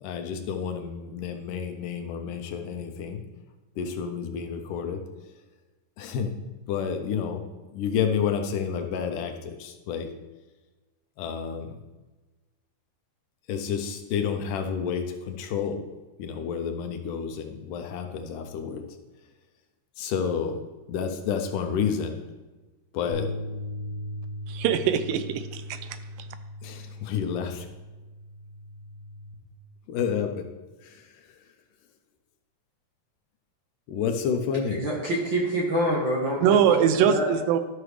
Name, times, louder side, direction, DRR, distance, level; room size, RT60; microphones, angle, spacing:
voice 1, 0.0-3.2 3.8-5.0 6.0-6.3 6.7-7.4 7.7-10.1 11.2-11.8 13.5-15.8 16.2-18.8 20.0-20.6 20.9-22.2 22.9-23.3 26.6-27.7 29.9-30.4 30.8-31.0 33.9-34.8, left 7 dB, 75° left, 5 dB, 2.2 m, -30 dB
sound 1, 23.1-29.4, left 1 dB, 70° right, 2.5 m, -38 dB
voice 2, 24.5-25.8 26.2-26.3 36.4-37.6, right 9 dB, 85° right, 11 dB, 2.3 m, -22 dB
voice 3, 34.7-37.3, equal, 55° right, -3 dB, 1.4 m, -27 dB
12.5 x 5.9 x 3.2 m, 1.2 s
omnidirectional pair, 3.9 m